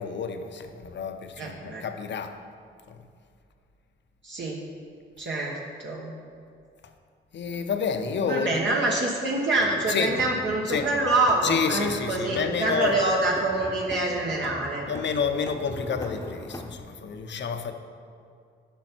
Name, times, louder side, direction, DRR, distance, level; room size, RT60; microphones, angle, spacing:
voice 1, 0.0-2.4 2.9-3.0 7.3-8.6 9.9-10.1 10.7-10.9 11.4-13.0 14.9-17.7, left 6 dB, 60° left, 7 dB, 0.7 m, -29 dB
voice 2, 1.4-1.8 4.2-4.6 5.2-6.2 8.3-14.9, right 2 dB, 65° right, -3 dB, 1.1 m, -26 dB
sound 1, 9.6-16.8, left 1 dB, 15° left, 0.8 m, -41 dB
10.0 x 5.7 x 4.5 m, 2.3 s
cardioid pair, 70°, 21 cm